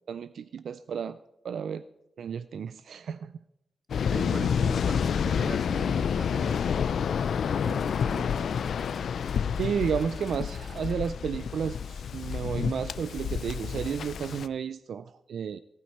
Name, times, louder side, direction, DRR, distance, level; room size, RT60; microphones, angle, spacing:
voice 1, 0.1-1.2 1.4-1.8 2.2-3.3 9.6-15.6, right 7 dB, 85° right, 14 dB, 0.3 m, -32 dB
Waves surf, 3.9-14.5, left 7 dB, 85° left, 0.4 m, -29 dB
voice 2, 4.1-6.7 7.6-8.6, right 3 dB, 45° right, 7 dB, 1.5 m, -40 dB
sound 1, 6.5-6.7 7.6-11.1, left 3 dB, 40° left, 2.4 m, -55 dB
17.0 x 9.1 x 4.3 m, 0.83 s
cardioid pair, 90°, 0 cm